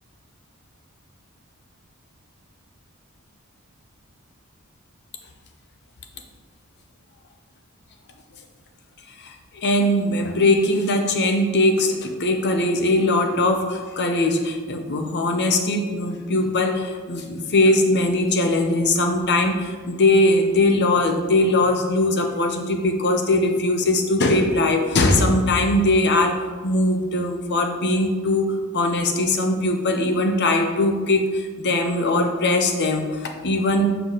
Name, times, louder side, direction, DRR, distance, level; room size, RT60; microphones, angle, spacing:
voice 1, 9.2-34.0, left 2 dB, 55° left, 5 dB, 0.8 m, -20 dB
7.6 x 4.6 x 4.0 m, 1.5 s
head